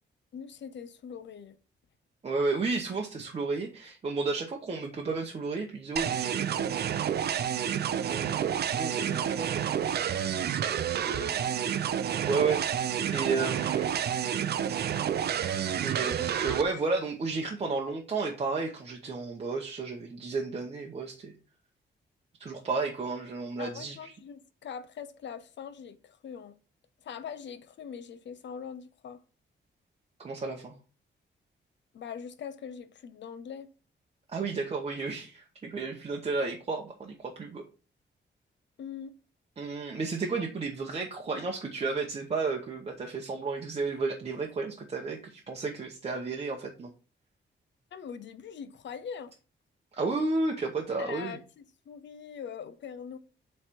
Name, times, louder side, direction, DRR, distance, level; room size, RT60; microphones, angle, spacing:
voice 1, 0.3-1.6 11.0-11.4 23.6-26.6 27.0-29.2 31.9-33.7 38.8-39.1 47.9-49.3 51.0-53.2, left 7 dB, 65° left, 0.7 m, -42 dB
voice 2, 2.2-6.8 8.1-9.7 11.3-11.5 12.2-14.0 15.8-21.3 22.4-24.1 30.2-30.8 34.3-37.6 39.6-46.9 49.9-51.4, right 4 dB, 30° right, 0.8 m, -32 dB
sound 1, 6.0-16.6, right 9 dB, 55° right, 0.5 m, -29 dB
7.8 x 3.2 x 4.4 m
wide cardioid pair, 175°, 20 cm